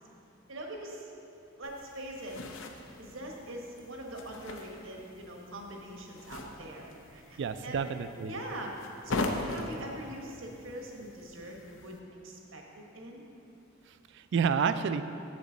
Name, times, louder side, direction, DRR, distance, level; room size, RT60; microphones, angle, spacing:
voice 1, 0.5-1.1 1.6-2.4 3.0-7.9 8.3-8.8 9.0-13.2, right 1 dB, 80° right, 1 dB, 1.1 m, -43 dB
sound 1, 1.6-12.0, left 2 dB, 70° left, 0.6 m, -41 dB
voice 2, 7.4-8.4 14.1-15.0, right 6 dB, 60° right, 11 dB, 0.3 m, -29 dB
8.3 x 7.4 x 3.9 m, 2.7 s
head